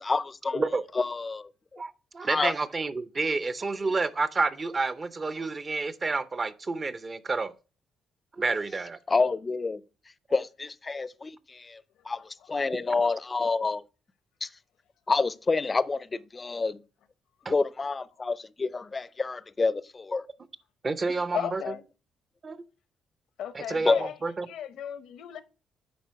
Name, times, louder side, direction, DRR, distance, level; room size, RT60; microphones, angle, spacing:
voice 1, 0.0-0.7 0.9-1.8 2.2-2.5 9.1-9.8 10.3-11.8 12.1-13.8 14.4-14.5 15.1-16.8 17.5-20.2 23.8-24.1, left 3 dB, 30° left, 0.5 m, -28 dB
voice 2, 1.8-7.5 8.4-9.0 17.5-17.6 20.8-21.6 22.4-22.6 23.5-24.5, right 3 dB, 35° right, 0.6 m, -29 dB
voice 3, 21.3-21.8 23.4-24.2 24.4-25.4, left 10 dB, 80° left, 0.8 m, -35 dB
9.4 x 3.6 x 4.6 m
cardioid pair, 90°, 0 cm